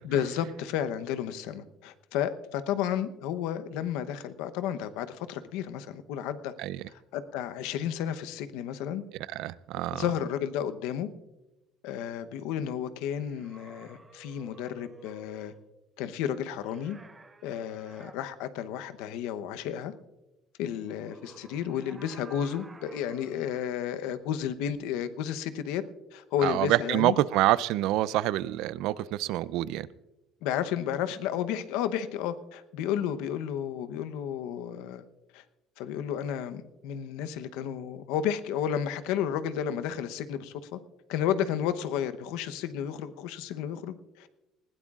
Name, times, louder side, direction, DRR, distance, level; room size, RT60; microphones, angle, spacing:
voice 1, 0.0-6.5 6.9-9.0 9.9-11.1 11.8-15.5 16.0-17.0 17.4-19.9 20.6-25.8 26.1-27.1 30.4-35.0 35.3-35.4 35.8-40.8 41.1-44.3, left 9 dB, 85° left, 11 dB, 0.9 m, -32 dB
voice 2, 9.3-10.0 26.4-29.9, right 15 dB, 65° right, 18 dB, 0.4 m, -27 dB
sound 1, 13.2-15.6 16.6-18.2 20.7-23.7, right 3 dB, 15° right, 1.0 m, -52 dB
20.0 x 16.0 x 2.5 m, 1.0 s
cardioid pair, 155°, 0 cm